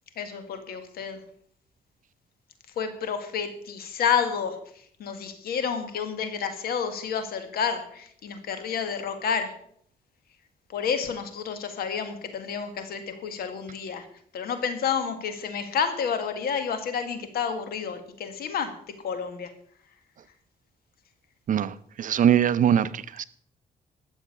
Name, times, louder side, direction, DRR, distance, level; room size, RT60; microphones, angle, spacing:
voice 1, 0.2-1.2 2.8-4.6 5.0-9.5 10.7-14.1 14.3-18.7 19.0-19.5, left 6 dB, 85° left, 1.9 m, -30 dB
voice 2, 21.5-23.2, right 9 dB, 60° right, 0.7 m, -22 dB
13.0 x 7.4 x 6.9 m
cardioid pair, 95°, 16 cm